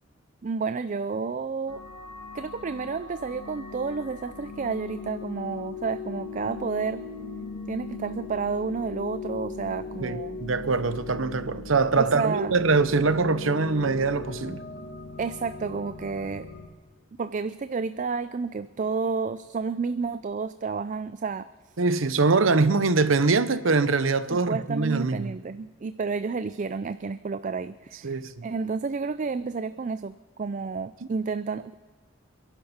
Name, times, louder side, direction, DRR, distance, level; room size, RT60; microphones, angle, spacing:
voice 1, 0.4-1.8 2.3-7.1 7.7-10.4 12.0-12.6 15.2-16.5 17.2-21.5 24.3-31.7, right 4 dB, 40° right, 0.4 m, -31 dB
sound 1, 1.7-16.7, left 4 dB, 90° left, 2.6 m, -39 dB
voice 2, 10.0-14.6 21.8-25.3 28.0-28.5, right 4 dB, 85° right, 0.9 m, -23 dB
28.5 x 11.0 x 4.3 m
head